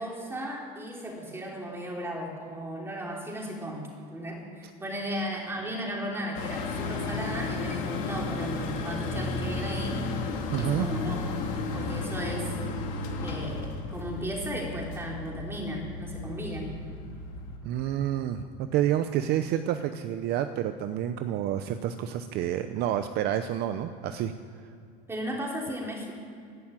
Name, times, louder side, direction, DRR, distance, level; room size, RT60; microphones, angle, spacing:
voice 1, 0.0-10.0 10.6-11.2 11.7-12.5 13.2-16.7 25.1-26.1, equal, 10° right, -2 dB, 3.3 m, -35 dB
sound 1, 6.3-17.6, left 3 dB, 70° left, 2.8 m, -33 dB
voice 2, 10.5-10.9 17.6-24.3, right 11 dB, 55° right, 9 dB, 0.7 m, -29 dB
11.0 x 11.0 x 9.0 m, 2.5 s
cardioid pair, 145°, 21 cm